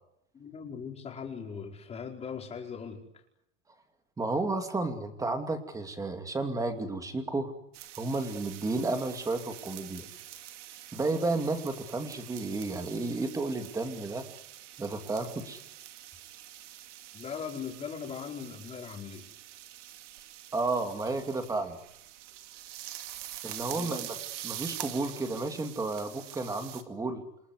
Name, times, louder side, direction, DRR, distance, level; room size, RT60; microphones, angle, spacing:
voice 1, 0.3-3.0 17.1-19.3 23.7-24.0, left 6 dB, 15° left, 1 dB, 4.8 m, -39 dB
voice 2, 4.2-7.5 8.0-10.1 10.9-14.3 14.8-15.6 20.5-21.8 23.4-24.1 24.4-27.2, right 3 dB, 10° right, 7 dB, 2.6 m, -32 dB
sound 1, 7.7-26.8, right 13 dB, 85° right, 2.5 m, -45 dB
28.5 x 19.5 x 9.8 m, 0.80 s
supercardioid pair, 160°, 35 cm